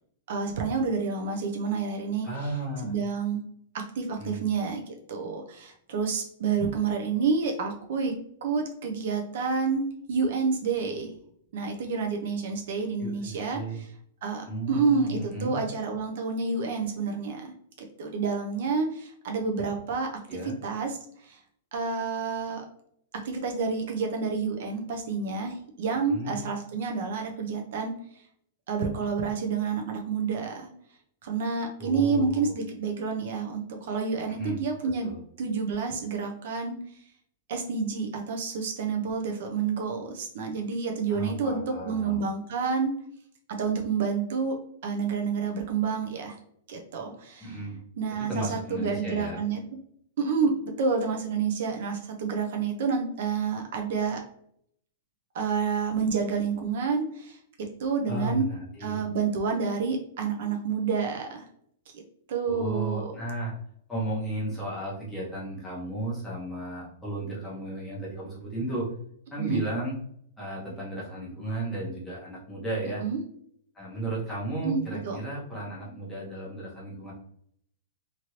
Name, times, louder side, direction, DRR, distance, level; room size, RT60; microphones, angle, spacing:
voice 1, 0.3-2.5 2.8-3.4 3.7-8.1 8.4-11.1 11.5-13.9 14.2-17.5 18.0-20.1 20.4-21.4 21.7-22.7 23.2-27.9 28.7-30.7 31.2-35.1 35.4-36.8 37.5-42.9 43.5-44.6 44.8-46.4 46.7-47.6 48.0-49.6 50.2-54.2 55.3-58.5 58.8-61.5 62.3-63.2 69.4-69.6 73.0-73.2 74.6-75.2, right 5 dB, 50° right, 3 dB, 0.5 m, -29 dB
voice 2, 2.2-2.9 4.2-4.4 13.0-13.8 14.5-15.6 20.3-20.6 26.1-26.4 31.8-32.5 34.3-34.6 35.0-35.2 41.1-42.2 47.4-47.8 48.3-49.4 58.1-59.0 62.5-63.5 63.9-68.9 69.3-70.0 70.4-73.0 73.7-77.1, right 1 dB, 5° left, -6 dB, 0.9 m, -34 dB
2.8 x 2.6 x 3.0 m, 0.67 s
supercardioid pair, 175°, 0 cm